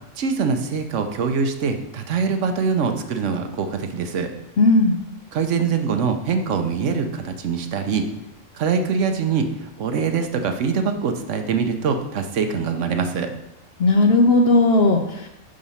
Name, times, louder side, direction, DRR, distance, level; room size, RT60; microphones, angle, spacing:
voice 1, 0.2-4.3 5.3-8.1 8.5-9.5 9.8-13.3, right 5 dB, 70° right, 6 dB, 1.0 m, -23 dB
voice 2, 4.6-5.0 13.8-15.3, left 2 dB, 60° left, 3 dB, 0.8 m, -16 dB
5.9 x 5.0 x 5.5 m, 0.88 s
omnidirectional pair, 1.3 m